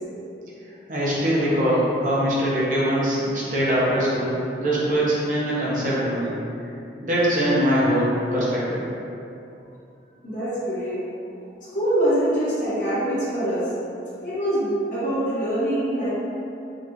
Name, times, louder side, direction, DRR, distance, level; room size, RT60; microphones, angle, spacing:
voice 1, 0.9-6.3 7.0-8.8, equal, 45° right, -7 dB, 0.9 m, -22 dB
voice 2, 10.2-11.0 11.7-13.7 14.2-16.1, right 1 dB, 45° left, -11 dB, 1.4 m, -24 dB
5.2 x 2.5 x 2.9 m, 2.7 s
head